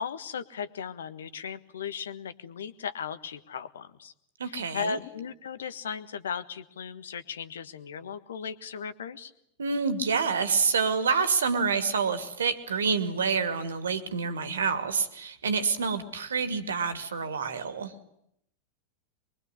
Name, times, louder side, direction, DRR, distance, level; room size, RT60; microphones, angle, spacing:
voice 1, 0.0-4.1 4.5-9.3, left 6 dB, 65° left, 13 dB, 1.5 m, -36 dB
voice 2, 4.4-5.0 9.6-17.9, right 5 dB, 70° right, 11 dB, 2.5 m, -27 dB
24.5 x 23.0 x 10.0 m, 0.74 s
figure-of-eight pair, 90°, 0 cm